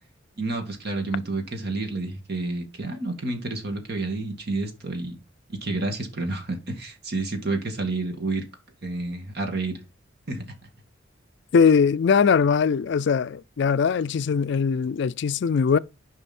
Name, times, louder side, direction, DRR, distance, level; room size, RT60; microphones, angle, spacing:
voice 1, 0.4-5.2 5.5-8.4 8.8-9.8 10.3-10.4, right 2 dB, 55° right, 2.1 m, -29 dB
voice 2, 11.5-15.8, left 6 dB, 60° left, 0.4 m, -21 dB
10.0 x 5.4 x 4.2 m
head